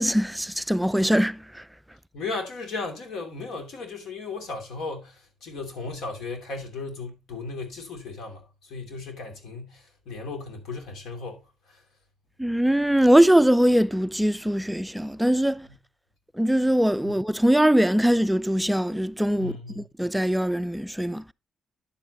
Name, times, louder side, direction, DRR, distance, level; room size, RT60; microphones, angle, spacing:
voice 1, 0.0-1.6 12.4-15.7 16.4-21.3, equal, 5° right, 0.4 m, -22 dB
voice 2, 2.1-11.8 15.7-15.8 17.0-17.2 19.3-19.8, left 3 dB, 75° left, 2.7 m, -36 dB
9.9 x 7.7 x 2.9 m
cardioid pair, 90°, 0 cm